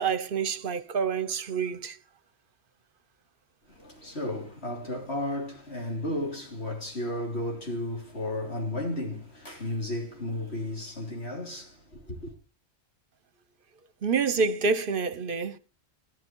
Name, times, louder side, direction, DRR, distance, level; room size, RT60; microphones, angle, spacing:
voice 1, 0.0-2.0 14.0-15.6, right 5 dB, 55° right, 1.0 m, -27 dB
voice 2, 3.7-12.3, left 1 dB, 70° left, 3.6 m, -33 dB
14.0 x 10.5 x 4.5 m
omnidirectional pair, 1.1 m